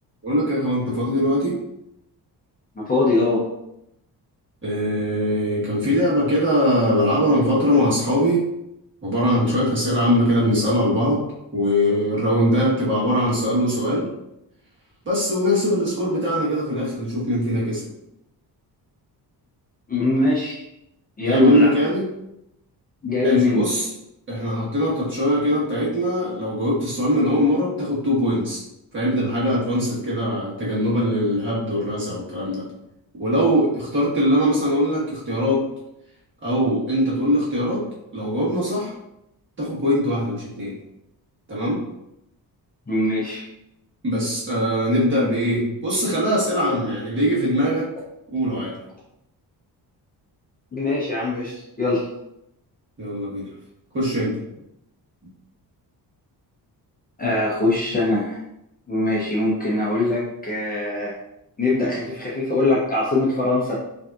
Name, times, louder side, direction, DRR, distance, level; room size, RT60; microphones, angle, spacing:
voice 1, 0.2-1.5 4.6-8.5 9.0-11.2 11.5-14.1 15.0-17.9 21.2-22.1 23.2-23.9 24.3-28.6 28.9-32.6 33.2-35.6 36.4-37.9 38.1-38.9 39.6-40.8 41.5-41.8 44.0-47.9 48.3-48.8 53.0-53.5 53.9-54.4 55.2-55.3, equal, 30° right, -6 dB, 1.2 m, -21 dB
voice 2, 2.8-3.4 19.9-20.6 21.2-21.7 23.0-23.7 42.9-43.5 50.7-52.1 57.2-58.4 58.9-61.2 61.6-63.7, left 2 dB, 20° left, -6 dB, 0.6 m, -22 dB
5.1 x 2.7 x 2.3 m, 0.84 s
wide cardioid pair, 175°, 40 cm